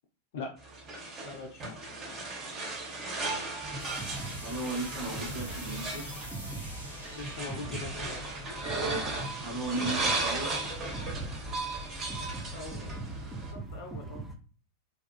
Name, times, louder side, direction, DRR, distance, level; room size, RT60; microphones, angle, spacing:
sound 1, 0.6-13.5, right 2 dB, 30° right, 0.9 m, -36 dB
voice 1, 1.2-1.6 7.1-8.2 12.5-13.0 13.4-14.3, left 4 dB, 55° left, 4 dB, 0.4 m, -42 dB
voice 2, 3.2-3.7 4.4-6.1 9.4-10.6, right 2 dB, 65° right, -6 dB, 0.9 m, -36 dB
sound 2, 3.6-14.4, right 2 dB, 10° right, 0.4 m, -41 dB
sound 3, 3.8-9.5, equal, 85° left, 0.7 m, -47 dB
2.7 x 2.3 x 2.3 m, 0.40 s
figure-of-eight pair, 90°, 0 cm